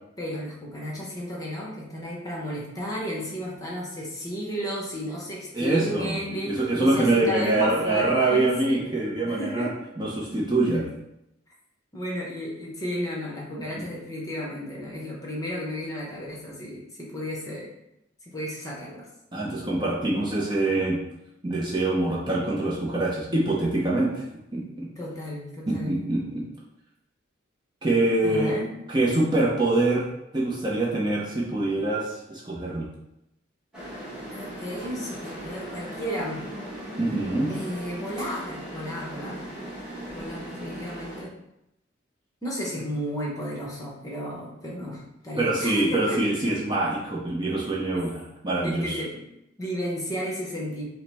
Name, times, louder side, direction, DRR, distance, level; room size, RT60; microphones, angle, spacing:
voice 1, 0.2-8.5 9.2-9.7 11.9-17.7 18.2-19.1 25.0-26.0 28.2-28.7 34.3-36.4 37.5-39.4 40.1-41.3 42.4-46.2 48.6-49.2 49.6-50.8, equal, 15° left, -3 dB, 0.8 m, -33 dB
voice 2, 5.5-9.7 10.0-10.9 19.3-21.0 21.4-24.2 24.5-24.9 25.7-26.4 27.8-28.5 28.9-30.1 30.3-32.9 37.0-37.5 45.4-49.0, right 2 dB, 20° right, -4 dB, 0.6 m, -25 dB
sound 1, 33.7-41.2, right 1 dB, 5° right, 1.1 m, -38 dB
5.4 x 2.0 x 3.4 m, 0.85 s
head